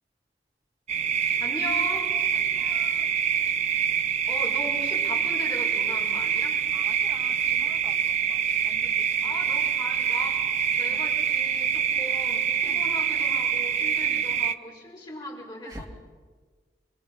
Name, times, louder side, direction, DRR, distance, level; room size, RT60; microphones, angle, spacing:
sound 1, 0.9-14.5, right 8 dB, 40° right, 0.6 m, -25 dB
voice 1, 1.1-2.1 4.3-6.6 9.2-15.9, left 2 dB, 25° left, -3 dB, 5.6 m, -38 dB
voice 2, 2.3-3.5 6.7-9.6 10.9-11.0 12.6-12.9 14.0-14.3 15.6-15.9, right 1 dB, 25° right, -1 dB, 3.0 m, -47 dB
28.0 x 23.5 x 5.7 m, 1.4 s
head